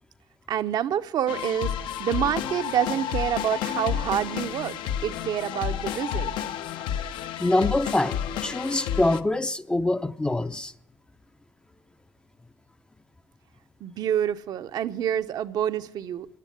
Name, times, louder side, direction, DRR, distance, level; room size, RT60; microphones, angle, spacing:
voice 1, 0.5-1.7 2.0-6.3 13.8-16.3, right 10 dB, 55° right, 0.7 m, -27 dB
sound 1, 1.3-9.2, left 9 dB, 70° left, 0.8 m, -31 dB
voice 2, 7.4-10.7, left 2 dB, 10° left, 0.5 m, -25 dB
16.0 x 10.5 x 6.8 m
cardioid pair, 110°, 8 cm